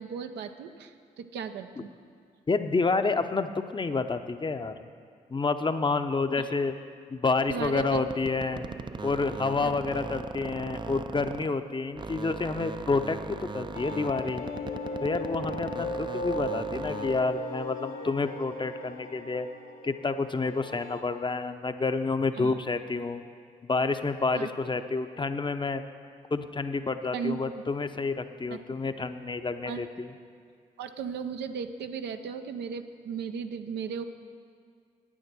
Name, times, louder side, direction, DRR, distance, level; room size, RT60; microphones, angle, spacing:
voice 1, 0.0-1.9 6.4-6.5 7.5-8.0 9.6-9.7 22.3-22.6 24.3-24.5 27.1-27.6 28.5-28.6 29.6-29.8 30.8-34.0, right 6 dB, 80° right, 8 dB, 0.6 m, -36 dB
voice 2, 2.5-4.7 5.3-6.8 7.1-8.7 9.0-14.4 15.0-19.5 19.8-23.2 23.7-25.8 26.3-30.1, left 3 dB, 30° left, 9 dB, 0.7 m, -29 dB
sound 1, 7.5-11.7 12.0-17.4, right 4 dB, 25° right, 0.4 m, -39 dB
sound 2, 13.7-21.0, left 1 dB, 55° left, 1.3 m, -37 dB
9.9 x 8.7 x 6.1 m, 2.2 s
supercardioid pair, 50°, 17 cm